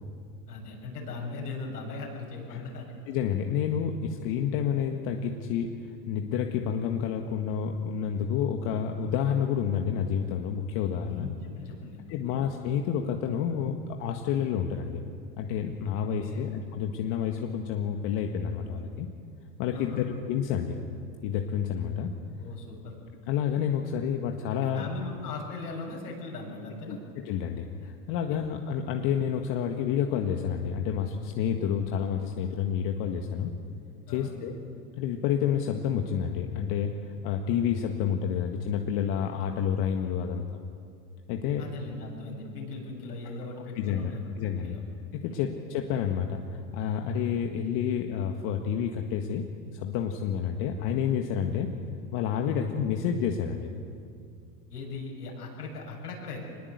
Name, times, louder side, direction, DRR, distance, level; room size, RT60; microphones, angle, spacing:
voice 1, 0.5-2.9 11.1-12.0 12.2-12.4 16.2-16.5 19.7-20.1 22.4-23.0 24.7-27.0 28.3-28.4 34.1-34.3 41.6-44.8 45.2-45.4 52.4-52.6 54.7-56.4, left 3 dB, 85° left, -1 dB, 7.8 m, -39 dB
voice 2, 3.1-11.3 12.1-15.0 15.4-19.1 19.6-20.8 21.2-22.1 23.3-24.9 26.9-33.5 34.1-34.5 35.0-40.6 41.3-41.6 43.8-44.1 44.4-44.8 45.1-49.5 49.7-51.7 52.1-53.7, left 8 dB, 55° left, 3 dB, 1.9 m, -29 dB
25.0 x 21.0 x 8.2 m, 2.4 s
hypercardioid pair, 90°, 46 cm